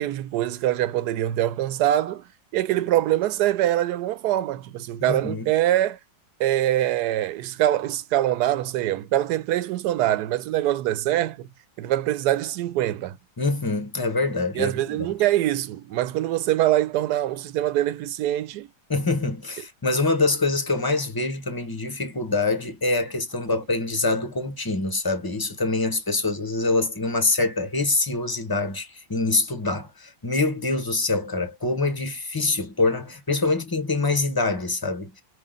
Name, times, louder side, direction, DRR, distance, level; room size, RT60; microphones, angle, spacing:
voice 1, 0.0-2.2 2.5-6.0 6.4-11.5 11.8-13.2 14.5-18.7, right 13 dB, 75° right, 1.1 m, -24 dB
voice 2, 5.0-5.5 13.4-14.7 18.9-35.2, left 3 dB, 20° left, 0.6 m, -25 dB
4.8 x 2.7 x 3.7 m
omnidirectional pair, 1.8 m